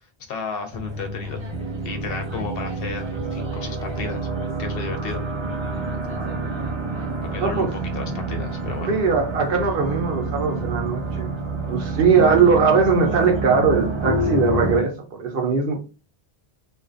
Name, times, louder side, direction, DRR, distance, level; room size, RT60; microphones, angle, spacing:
voice 1, 0.3-1.4 1.8-4.3 4.6-5.2 7.3-9.0, left 5 dB, 65° left, 5 dB, 0.7 m, -33 dB
sound 1, 0.7-14.8, right 2 dB, 30° right, 0.7 m, -28 dB
voice 2, 7.4-7.7 8.9-11.3 11.7-15.8, right 5 dB, 65° right, 3 dB, 0.8 m, -20 dB
2.4 x 2.3 x 2.4 m, 0.32 s
omnidirectional pair, 1.1 m